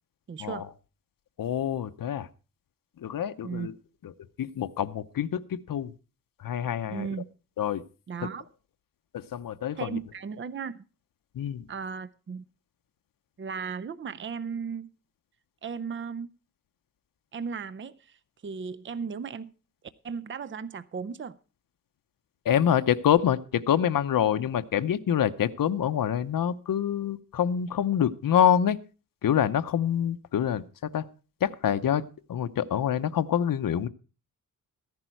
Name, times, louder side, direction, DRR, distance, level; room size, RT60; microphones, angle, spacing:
voice 1, 0.3-0.7 3.4-3.7 6.9-7.3 8.1-8.5 9.7-10.8 11.7-12.4 13.4-14.9 15.6-16.3 17.3-18.2 18.4-19.5 20.0-21.4, right 6 dB, 35° right, 0.6 m, -36 dB
voice 2, 1.4-2.3 3.0-3.7 4.4-5.9 6.4-7.1 7.6-7.8 9.1-10.0 11.3-11.6 22.4-28.8 29.2-31.0 31.4-32.0 32.3-33.9, left 9 dB, 75° left, 0.8 m, -26 dB
14.5 x 10.5 x 4.5 m
wide cardioid pair, 135°, 34 cm